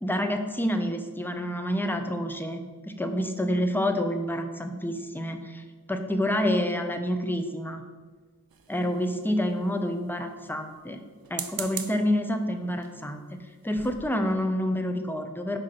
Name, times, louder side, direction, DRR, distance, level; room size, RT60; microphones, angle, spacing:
voice 1, 0.0-7.8 8.7-11.0 11.3-15.6, equal, 5° left, 6 dB, 0.6 m, -28 dB
sound 1, 8.5-9.3 11.2-12.1 12.8-13.0 13.5-13.6 13.8-14.1, right 6 dB, 70° right, 0.5 m, -38 dB
5.1 x 3.8 x 5.8 m, 1.4 s
wide cardioid pair, 45°, 37 cm